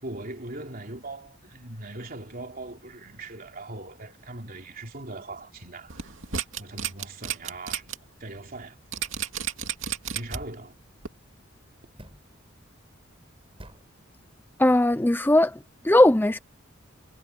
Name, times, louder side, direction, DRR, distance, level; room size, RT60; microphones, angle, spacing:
voice 1, 0.0-6.1 6.6-7.9 8.2-9.0 10.1-10.8, right 2 dB, 50° right, 3.4 m, -40 dB
sound 1, 5.9-8.0 8.3-8.5 8.9-10.6 11.0-11.1, right 8 dB, 75° right, 2.5 m, -32 dB
sound 2, 10.3-10.7 12.0-12.3 13.6-13.9, equal, 30° right, 6.3 m, -42 dB
voice 2, 14.6-15.6 15.8-16.4, left 1 dB, 10° left, 0.6 m, -19 dB
head